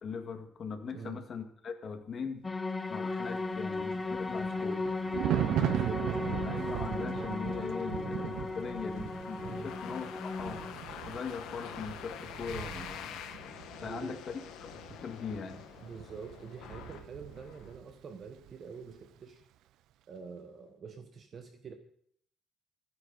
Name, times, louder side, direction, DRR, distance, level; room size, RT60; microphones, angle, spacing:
voice 1, 0.0-2.5 2.9-4.8 5.4-5.7 6.3-10.6 11.1-13.5 13.8-14.2 14.6-15.6, left 5 dB, 35° left, 6 dB, 2.0 m, -41 dB
voice 2, 0.9-1.2 5.2-6.1 9.4-9.7 13.8-14.2 15.8-19.4 20.1-21.7, right 5 dB, 35° right, 7 dB, 1.3 m, -46 dB
sound 1, 2.4-10.7, left 3 dB, 15° left, 0.7 m, -36 dB
Thunder, 3.4-17.9 18.2-18.5, right 13 dB, 70° right, 0.5 m, -38 dB
sound 2, 6.6-17.7, left 9 dB, 90° left, 1.7 m, -47 dB
28.5 x 9.9 x 4.2 m, 0.64 s
cardioid pair, 170°, 0 cm